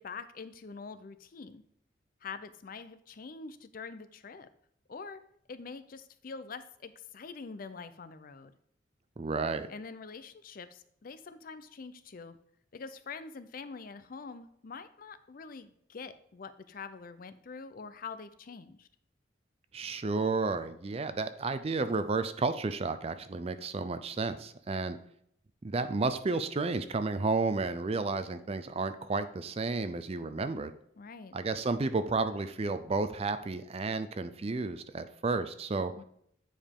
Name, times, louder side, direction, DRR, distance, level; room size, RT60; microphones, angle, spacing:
voice 1, 0.0-1.6 2.2-4.5 4.9-5.2 5.5-8.5 9.7-12.4 12.7-18.9 31.0-31.4 35.9-36.0, left 5 dB, 50° left, 12 dB, 0.5 m, -45 dB
voice 2, 9.2-9.7 19.7-25.0 25.6-30.7 31.3-35.9, right 3 dB, 30° right, 11 dB, 0.4 m, -32 dB
8.9 x 5.0 x 3.6 m, 0.69 s
head